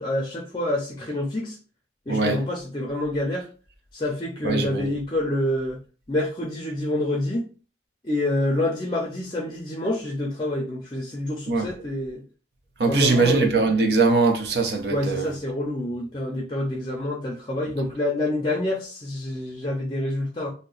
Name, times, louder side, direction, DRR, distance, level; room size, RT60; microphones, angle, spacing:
voice 1, 0.0-1.6 2.1-3.5 3.9-5.8 6.1-7.5 8.0-12.2 12.9-13.5 14.9-20.5, left 1 dB, 25° left, 0.5 m, -27 dB
voice 2, 2.1-2.4 4.4-4.9 11.5-11.7 12.8-15.3, right 3 dB, 60° right, 0.6 m, -21 dB
2.8 x 2.1 x 3.8 m
head